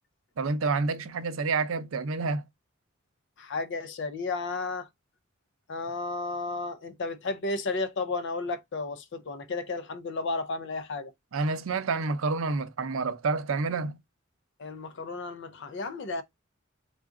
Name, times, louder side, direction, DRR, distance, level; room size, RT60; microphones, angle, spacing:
voice 1, 0.4-2.5 11.3-14.0, right 4 dB, 75° right, 0.5 m, -28 dB
voice 2, 3.4-4.9 5.7-11.1 14.6-16.2, left 3 dB, 60° left, 0.5 m, -33 dB
3.8 x 2.4 x 3.5 m
head